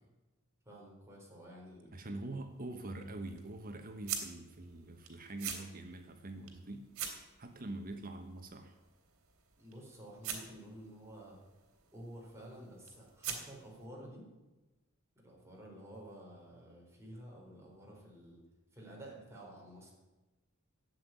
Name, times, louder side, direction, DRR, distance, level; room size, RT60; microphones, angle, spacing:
voice 1, 0.6-1.9 9.6-11.4 11.9-14.3 15.1-18.4 18.7-19.9, right 1 dB, 15° right, -3 dB, 4.5 m, -51 dB
voice 2, 1.9-6.9 7.4-8.8, right 2 dB, 40° right, 6 dB, 1.1 m, -44 dB
sound 1, 2.3-13.9, right 7 dB, 85° right, 2.6 m, -47 dB
12.5 x 7.9 x 9.4 m, 1.1 s
head